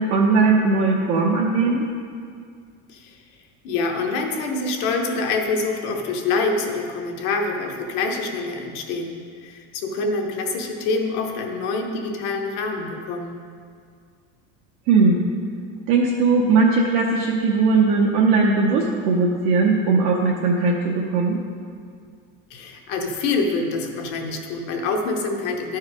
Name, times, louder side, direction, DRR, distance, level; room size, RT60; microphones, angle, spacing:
voice 1, 0.0-1.8 14.9-15.2 15.9-21.4, right 4 dB, 60° right, -2 dB, 0.9 m, -19 dB
voice 2, 3.6-13.4 22.5-25.8, left 3 dB, 60° left, 2 dB, 1.1 m, -26 dB
11.5 x 4.7 x 4.8 m, 2.1 s
cardioid pair, 175°, 33 cm